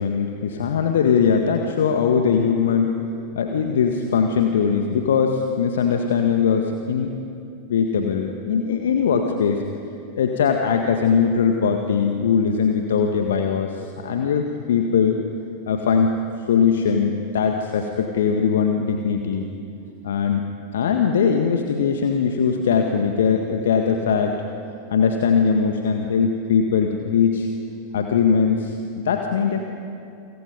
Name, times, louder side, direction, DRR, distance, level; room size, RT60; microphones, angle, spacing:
voice 1, 0.0-2.9 3.3-7.1 7.7-9.6 10.2-15.2 15.7-16.2 16.5-19.5 20.0-20.5 20.7-24.3 24.9-27.5 27.9-28.8 29.0-29.6, left 6 dB, 60° left, 4 dB, 1.7 m, -20 dB
29.5 x 26.0 x 5.3 m, 2.6 s
figure-of-eight pair, 90°, 0 cm